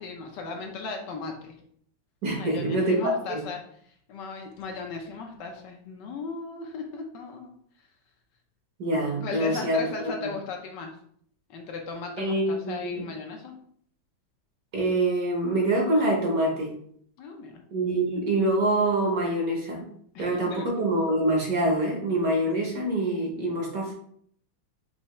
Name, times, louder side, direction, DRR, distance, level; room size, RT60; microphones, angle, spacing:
voice 1, 0.0-1.5 2.3-3.6 4.1-7.5 9.2-11.0 11.5-13.6 17.2-17.6 20.1-20.7, left 4 dB, 70° left, 2 dB, 1.2 m, -36 dB
voice 2, 2.2-3.4 8.8-9.8 10.2-10.3 12.2-13.0 14.7-16.7 17.7-19.9 20.2-23.9, right 1 dB, 55° right, 0 dB, 1.3 m, -25 dB
5.6 x 2.7 x 3.0 m, 0.63 s
omnidirectional pair, 2.1 m